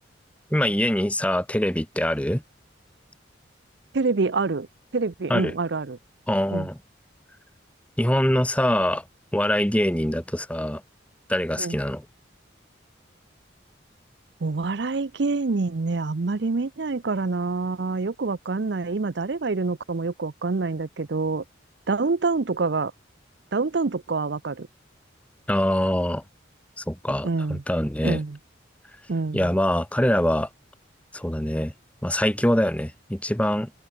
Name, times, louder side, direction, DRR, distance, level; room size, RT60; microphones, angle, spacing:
voice 1, 0.5-2.4 5.3-5.5 6.3-6.8 8.0-9.0 9.3-10.8 11.3-12.0 25.5-26.2 26.8-28.2 29.3-30.5 31.1-31.7 32.0-33.7, left 1 dB, 5° left, 1.1 m, -24 dB
voice 2, 3.9-4.7 4.9-6.0 6.5-6.7 11.6-11.8 14.4-21.4 21.9-22.9 23.5-24.7 27.2-27.6 28.0-28.4 29.1-29.5, right 3 dB, 60° right, 0.6 m, -26 dB
open air
head